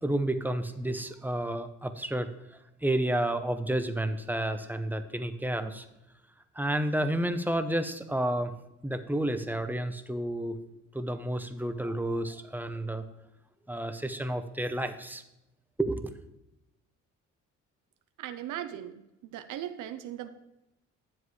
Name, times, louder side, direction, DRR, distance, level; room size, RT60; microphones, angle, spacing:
voice 1, 0.0-2.3 2.8-5.9 6.5-8.5 8.8-10.6 10.9-13.1 13.7-15.2 15.8-16.1, right 1 dB, 5° right, 9 dB, 0.7 m, -30 dB
voice 2, 18.2-20.3, right 11 dB, 80° right, 8 dB, 0.6 m, -38 dB
10.5 x 7.5 x 3.2 m, 0.90 s
cardioid pair, 90°, 30 cm